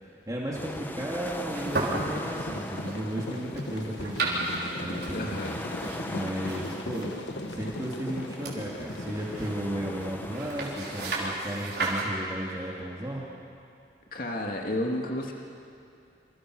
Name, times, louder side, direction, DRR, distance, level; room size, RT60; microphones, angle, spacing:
voice 1, 0.0-5.4 6.1-7.2 7.5-13.2, right 1 dB, 20° right, -5 dB, 2.8 m, -34 dB
sound 1, 0.5-11.3, left 1 dB, 10° left, 1.1 m, -41 dB
sound 2, 1.2-12.1, right 2 dB, 60° right, 5.3 m, -36 dB
sound 3, 1.6-10.7, left 1 dB, 75° left, 1.4 m, -39 dB
voice 2, 5.1-5.6 14.1-15.3, left 1 dB, 50° left, 0 dB, 2.5 m, -31 dB
28.5 x 27.5 x 6.4 m, 2.5 s
head